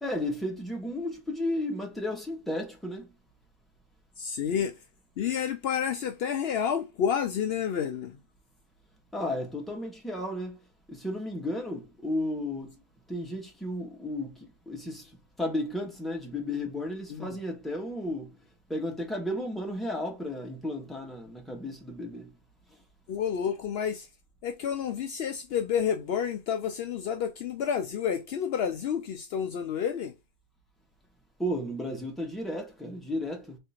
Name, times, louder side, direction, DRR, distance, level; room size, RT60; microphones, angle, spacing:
voice 1, 0.0-3.1 9.1-10.6 10.9-12.7 13.1-15.1 15.4-18.3 18.7-22.3 31.4-33.6, left 1 dB, ahead, 1.1 m, -33 dB
voice 2, 4.2-4.7 5.2-8.2 17.1-17.3 23.1-24.1 24.4-30.1, left 8 dB, 85° left, 0.5 m, -30 dB
3.7 x 3.3 x 4.3 m
omnidirectional pair, 1.6 m